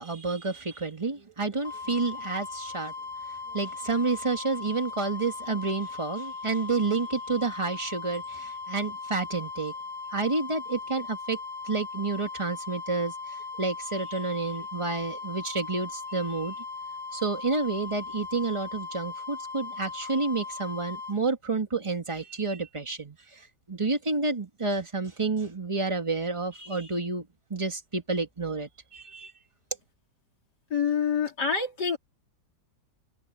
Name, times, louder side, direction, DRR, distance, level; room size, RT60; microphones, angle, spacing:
voice 1, 0.0-2.9 3.5-9.7 10.1-11.4 11.6-13.1 13.6-16.6 17.1-23.4 23.7-27.3 27.5-29.3, right 3 dB, 15° right, 1.9 m, -30 dB
sound 1, 1.6-21.2, left 4 dB, 15° left, 1.9 m, -38 dB
voice 2, 30.7-32.0, left 6 dB, 65° left, 4.1 m, -26 dB
omnidirectional pair, 1.9 m